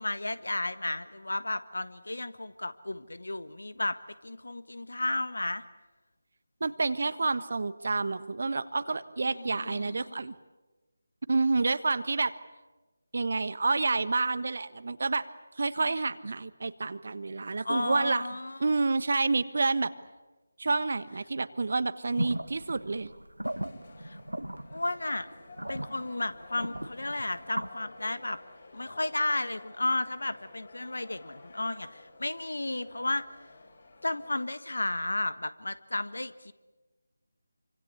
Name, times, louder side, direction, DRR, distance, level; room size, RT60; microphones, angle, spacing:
voice 1, 0.0-5.6 9.2-10.3 17.6-18.6 24.0-24.2 24.7-25.3 25.7-28.4 28.7-33.3 34.0-36.5, left 2 dB, 70° left, 13 dB, 1.5 m, -33 dB
voice 2, 6.6-10.3 11.3-12.3 13.1-15.3 15.6-18.3 18.6-19.9 20.6-23.1, right 3 dB, 50° right, 14 dB, 1.3 m, -29 dB
sound 1, 22.2-27.7, right 1 dB, 85° right, 1.5 m, -37 dB
sound 2, 23.4-34.5, left 3 dB, 45° left, 6.6 m, -52 dB
27.0 x 25.5 x 8.5 m, 1.2 s
figure-of-eight pair, 160°, 0 cm